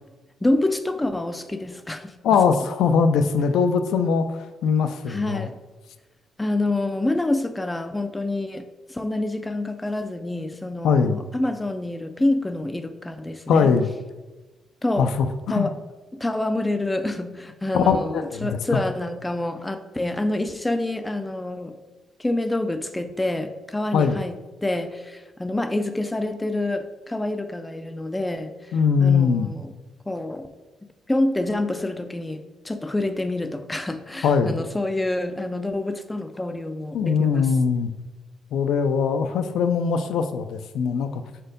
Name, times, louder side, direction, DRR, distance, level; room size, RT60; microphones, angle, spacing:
voice 1, 0.4-2.2 5.1-5.6 6.4-13.7 14.8-15.1 15.5-15.7 16.2-21.8 22.2-28.7 29.0-29.7 30.1-30.5 31.1-37.5, left 2 dB, 10° left, 8 dB, 0.3 m, -27 dB
voice 2, 2.2-5.5 10.8-11.2 13.5-13.9 15.0-15.7 17.7-18.8 23.9-24.2 28.7-29.5 34.2-34.6 36.9-37.9 38.5-41.2, left 6 dB, 75° left, 8 dB, 0.4 m, -21 dB
4.4 x 4.3 x 5.1 m, 1.2 s
cardioid pair, 155°, 0 cm